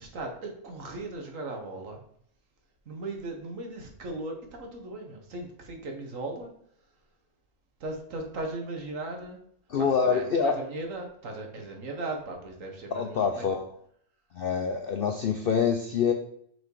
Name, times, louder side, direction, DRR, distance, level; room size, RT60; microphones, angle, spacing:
voice 1, 0.0-2.0 2.9-6.5 7.8-9.4 9.8-13.4, right 2 dB, 60° right, 3 dB, 1.6 m, -37 dB
voice 2, 9.7-10.6 12.9-13.6 14.3-16.1, left 6 dB, 65° left, 5 dB, 0.5 m, -26 dB
6.0 x 4.6 x 4.7 m, 0.67 s
omnidirectional pair, 1.5 m